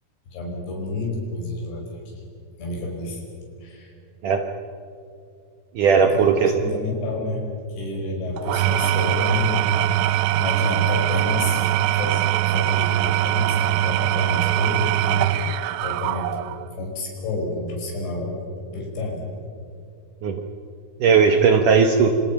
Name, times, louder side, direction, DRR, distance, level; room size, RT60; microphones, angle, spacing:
voice 1, 0.3-2.0 2.6-3.2 3.6-3.9 6.1-6.3 6.6-7.4 7.7-9.6 10.4-15.3 15.8-16.4 16.8-18.4 18.7-19.3, left 2 dB, 90° left, 0 dB, 7.8 m, -29 dB
voice 2, 5.8-6.5 20.2-20.5 21.0-22.1, right 6 dB, 70° right, 5 dB, 2.0 m, -17 dB
Engine / Tools, 8.4-16.7, right 14 dB, 85° right, 3.1 m, -22 dB
29.0 x 27.0 x 5.9 m, 2.4 s
omnidirectional pair, 5.1 m